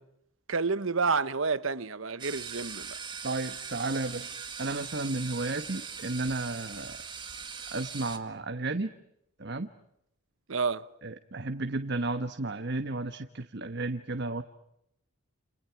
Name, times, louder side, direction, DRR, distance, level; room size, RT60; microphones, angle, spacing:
voice 1, 0.5-2.9 10.5-10.8, right 4 dB, 70° right, 1.1 m, -29 dB
sound 1, 2.2-8.2, right 6 dB, 20° right, 2.1 m, -41 dB
voice 2, 3.2-7.0 7.7-8.9 9.4-9.7 11.0-14.4, right 2 dB, 55° right, 1.2 m, -33 dB
30.0 x 30.0 x 5.9 m
head